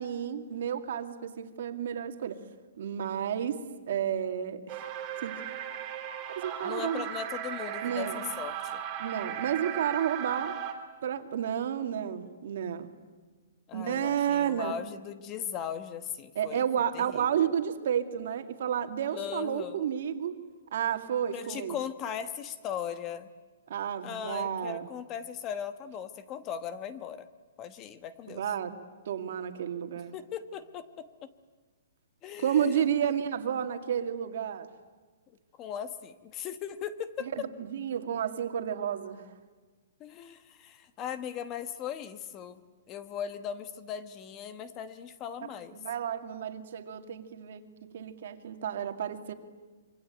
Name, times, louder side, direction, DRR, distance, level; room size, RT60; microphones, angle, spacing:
voice 1, 0.0-2.4 2.8-4.8 5.2-5.3 6.4-7.1 7.8-8.2 9.0-10.6 11.0-12.9 13.7-14.7 16.4-20.4 20.7-21.8 23.7-24.9 28.3-28.7 29.1-30.1 32.4-34.7 37.4-39.3 45.7-47.6 47.9-49.3, right 9 dB, 55° right, 7 dB, 2.3 m, -31 dB
sound 1, 4.7-10.7, right 9 dB, 20° right, 3.3 m, -37 dB
voice 2, 6.6-8.8 13.7-16.6 16.9-17.5 19.1-19.8 21.3-23.3 24.0-27.3 27.6-28.4 30.1-31.1 32.2-33.2 35.6-37.3 40.0-42.6 42.9-45.8, left 8 dB, 20° left, 12 dB, 1.2 m, -38 dB
26.5 x 24.5 x 9.1 m, 1.4 s
hypercardioid pair, 170°, 0 cm